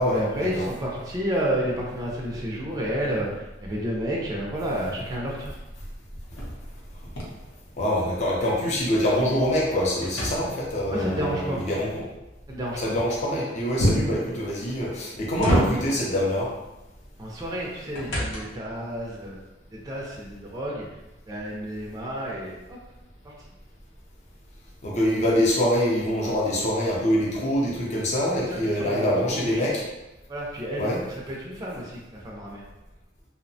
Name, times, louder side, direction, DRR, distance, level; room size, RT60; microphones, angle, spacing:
voice 1, 0.0-5.6 10.9-11.6 12.5-12.9 17.2-19.4 19.7-20.9 21.3-22.8 23.2-23.3 28.5-29.7 30.3-32.6, equal, 20° right, -3 dB, 0.4 m, -31 dB
sound 1, 5.4-8.3 8.7-11.0 13.8-14.3 14.9-16.1 17.4-18.7, equal, 90° left, 0.7 m, -28 dB
voice 2, 7.8-12.0 12.8-16.5 24.8-29.8 30.8-31.0, equal, 40° left, -4 dB, 0.5 m, -25 dB
2.7 x 2.0 x 2.6 m, 1.0 s
head